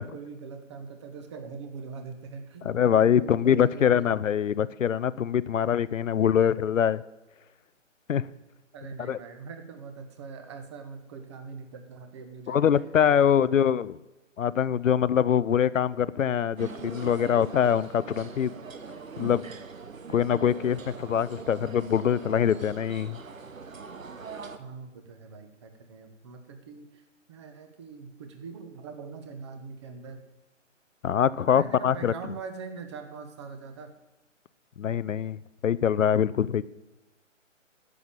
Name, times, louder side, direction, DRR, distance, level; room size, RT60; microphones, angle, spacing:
voice 1, 0.0-4.1 8.7-12.6 13.1-13.8 24.6-30.2 31.5-33.9, right 5 dB, 20° right, 7 dB, 1.0 m, -43 dB
voice 2, 2.7-7.0 8.1-8.3 9.1-9.2 12.5-14.0 14.4-18.5 19.2-19.4 20.1-23.2 31.0-32.1 34.8-36.6, left 8 dB, 75° left, 18 dB, 0.7 m, -24 dB
sound 1, 16.6-24.6, right 5 dB, 90° right, 1.3 m, -42 dB
10.0 x 7.1 x 8.8 m, 1.0 s
hypercardioid pair, 155°, 39 cm